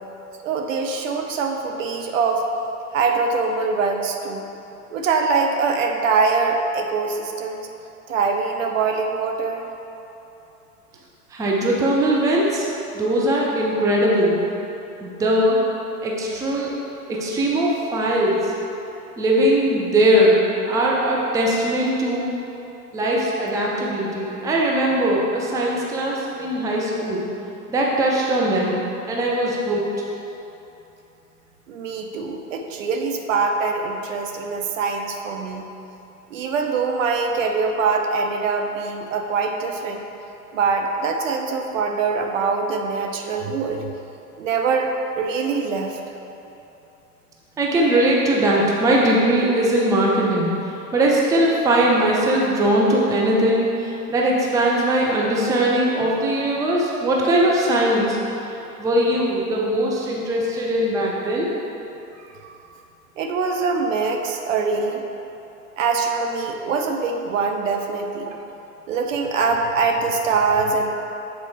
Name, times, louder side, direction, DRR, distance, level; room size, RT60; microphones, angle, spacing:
voice 1, 0.4-2.5 2.9-4.5 4.9-7.7 8.1-9.7 31.7-35.7 36.3-40.0 40.5-43.9 44.4-46.0 62.4-62.5 63.2-65.0 65.8-68.4 68.9-70.9, right 4 dB, 55° right, 3 dB, 0.8 m, -23 dB
voice 2, 11.3-12.7 12.9-14.4 15.0-15.6 16.0-16.7 17.1-18.5 19.2-22.3 22.9-27.3 27.7-29.9 47.6-58.2 58.8-61.5, right 1 dB, 5° right, -3 dB, 0.6 m, -20 dB
7.8 x 4.3 x 4.2 m, 2.9 s
figure-of-eight pair, 100°, 46 cm